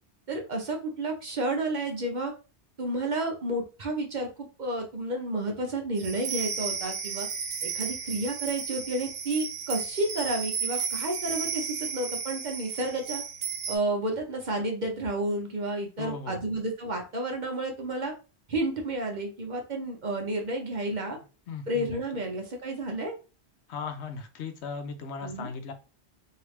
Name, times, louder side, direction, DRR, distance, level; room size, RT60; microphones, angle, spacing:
voice 1, 0.3-2.3 2.8-7.3 7.6-13.2 13.7-18.1 18.5-21.2 21.7-23.1 25.2-25.5, right 2 dB, 45° right, 2 dB, 0.8 m, -31 dB
sound 1, 6.0-13.8, right 6 dB, 85° right, 0.9 m, -34 dB
voice 2, 16.0-16.5 21.5-22.0 23.7-25.7, left 5 dB, 75° left, 7 dB, 0.9 m, -37 dB
3.2 x 2.8 x 3.1 m, 0.33 s
omnidirectional pair, 1.2 m